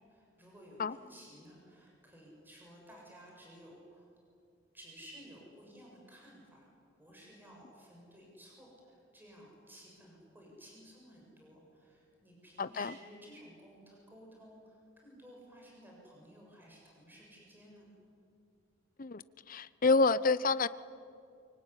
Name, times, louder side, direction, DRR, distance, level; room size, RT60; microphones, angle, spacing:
voice 1, 0.1-4.1 4.7-6.7 7.0-17.9, equal, 10° right, -2 dB, 6.9 m, -55 dB
voice 2, 12.6-12.9 19.0-19.2 19.5-20.7, left 3 dB, 45° left, 16 dB, 0.7 m, -28 dB
24.5 x 24.0 x 9.9 m, 2.4 s
head